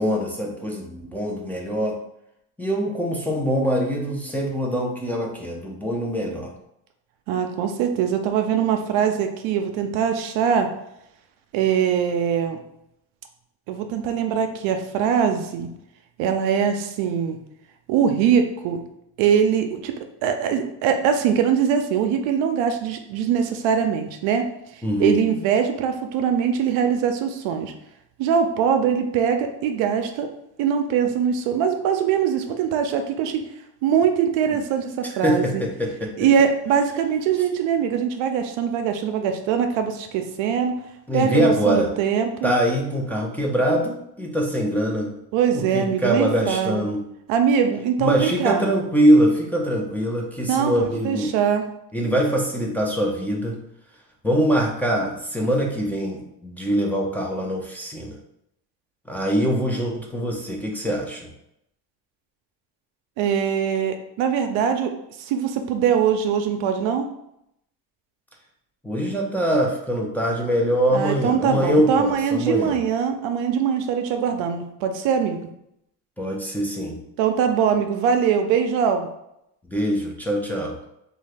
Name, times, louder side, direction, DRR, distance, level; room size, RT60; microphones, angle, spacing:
voice 1, 0.0-2.0 2.6-6.5 24.8-25.2 34.5-34.6 35.2-36.1 41.1-41.9 42.4-45.1 45.5-47.1 48.0-51.4 51.9-53.6 54.2-58.2 59.1-61.3 68.8-72.7 76.2-77.0 79.7-80.8, equal, 5° left, -2 dB, 0.5 m, -23 dB
voice 2, 7.3-10.7 11.5-12.6 13.7-15.7 16.2-17.4 17.9-18.8 19.2-19.9 20.2-24.5 24.7-27.7 28.2-30.3 30.6-33.4 33.8-35.6 36.2-40.7 41.1-42.5 45.3-46.9 47.3-48.7 50.5-50.7 51.0-51.6 63.2-64.9 65.2-67.1 70.9-75.4 77.2-79.1, right 7 dB, 80° right, 6 dB, 0.6 m, -22 dB
2.8 x 2.3 x 3.3 m, 0.80 s
supercardioid pair, 90°, 45 cm